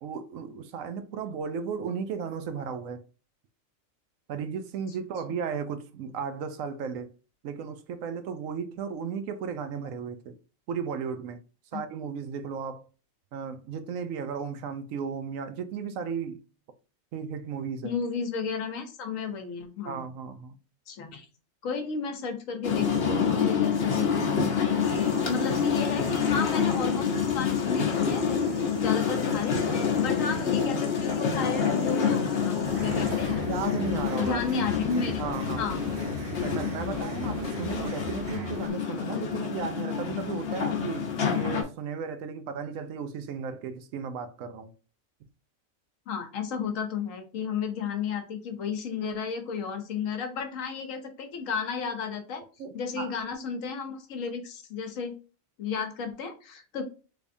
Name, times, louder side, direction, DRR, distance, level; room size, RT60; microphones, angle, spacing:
voice 1, 0.0-3.0 4.3-7.1 7.4-10.4 10.7-11.4 11.7-12.9 13.3-16.4 17.1-17.9 19.9-20.6 33.4-34.4 35.2-35.7 36.4-44.7 52.6-53.1, right 6 dB, 75° right, 1.0 m, -35 dB
voice 2, 17.8-20.0 20.9-21.3 21.6-33.4 34.2-35.1 35.6-35.8 46.1-52.4 52.7-55.1 55.6-56.8, left 5 dB, 70° left, 1.1 m, -33 dB
sound 1, 22.6-41.6, left 6 dB, 55° left, 0.9 m, -27 dB
sound 2, 24.8-33.1, left 1 dB, 15° left, 1.0 m, -49 dB
sound 3, 32.6-38.7, right 3 dB, 55° right, 0.7 m, -40 dB
3.4 x 3.4 x 2.6 m
omnidirectional pair, 1.4 m